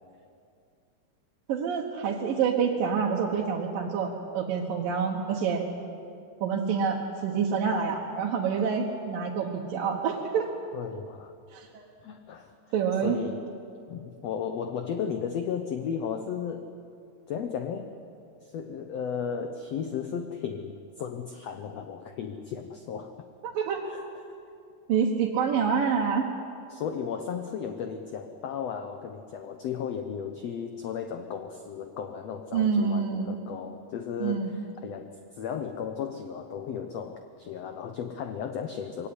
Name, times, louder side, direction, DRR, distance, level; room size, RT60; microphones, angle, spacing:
voice 1, 1.5-5.6 6.4-10.5 11.5-11.8 12.7-13.2 23.4-23.8 24.9-26.3 32.5-33.4 34.2-34.6, right 6 dB, 70° right, -2 dB, 3.0 m, -27 dB
voice 2, 10.7-11.3 12.0-12.5 13.0-13.4 13.9-16.7 17.3-17.9 18.5-23.3 23.8-24.0 26.7-35.1 35.3-39.1, left 7 dB, 80° left, 7 dB, 1.4 m, -35 dB
22.0 x 17.0 x 9.7 m, 2.5 s
omnidirectional pair, 4.2 m